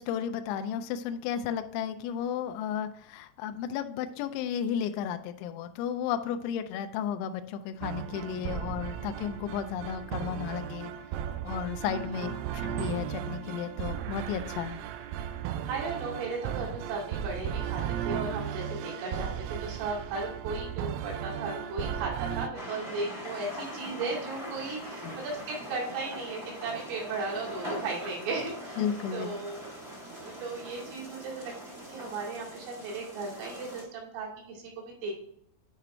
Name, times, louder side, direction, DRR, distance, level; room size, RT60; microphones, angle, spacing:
voice 1, 0.0-10.9 11.4-14.8 25.0-25.2 28.8-29.3, left 8 dB, 85° left, 8 dB, 2.6 m, -33 dB
sound 1, 7.8-22.5, right 9 dB, 90° right, 3.3 m, -36 dB
voice 2, 12.2-12.6 15.7-28.8 29.1-29.6 30.1-31.5 31.9-35.1, right 3 dB, 70° right, -3 dB, 4.9 m, -36 dB
sound 2, 22.5-33.8, equal, 35° right, 1.0 m, -41 dB
9.8 x 5.0 x 3.3 m, 0.68 s
omnidirectional pair, 5.9 m